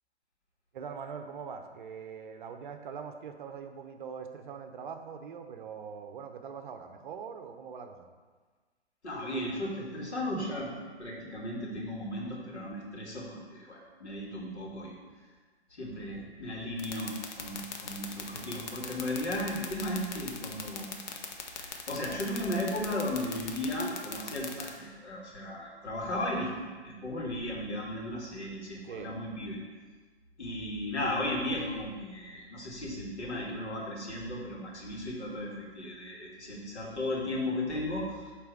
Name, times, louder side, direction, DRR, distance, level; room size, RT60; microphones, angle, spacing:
voice 1, 0.7-8.1 28.8-29.1, right 6 dB, 45° right, 6 dB, 0.7 m, -42 dB
voice 2, 9.0-14.9 15.7-21.0 21.4-29.6 30.4-38.3, left 1 dB, 75° left, -3 dB, 2.0 m, -35 dB
sound 1, 16.8-24.7, left 8 dB, 40° left, 0.8 m, -38 dB
7.9 x 3.4 x 4.7 m, 1.4 s
figure-of-eight pair, 125°, 33 cm